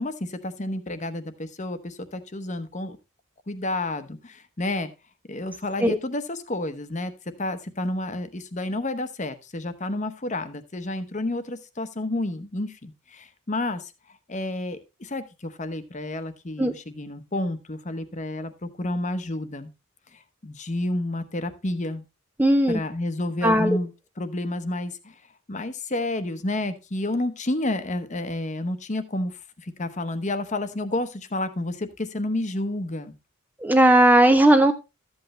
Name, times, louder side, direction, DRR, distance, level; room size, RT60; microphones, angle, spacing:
voice 1, 0.0-3.0 3.5-4.9 5.3-7.1 7.4-13.9 14.3-19.7 20.4-22.0 22.7-23.9 24.2-25.1 25.5-33.1, left 1 dB, 35° left, 11 dB, 0.9 m, -30 dB
voice 2, 22.4-22.8 23.4-23.8 33.6-34.7, right 1 dB, 10° right, 8 dB, 0.5 m, -17 dB
13.0 x 8.0 x 3.1 m, 0.27 s
head